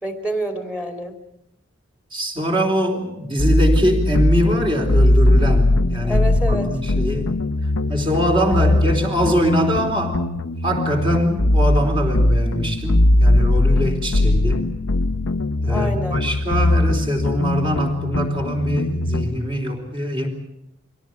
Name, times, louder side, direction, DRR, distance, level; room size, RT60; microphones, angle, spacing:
voice 1, 0.0-1.2 6.0-6.7 8.4-8.8 15.7-16.2, right 1 dB, 5° right, 5 dB, 2.8 m, -28 dB
voice 2, 2.1-7.3 7.9-10.2 10.6-14.7 15.6-20.3, equal, 25° right, 2 dB, 3.8 m, -23 dB
sound 1, 3.4-19.3, left 1 dB, 90° left, 0.9 m, -19 dB
24.0 x 17.5 x 8.6 m, 0.79 s
head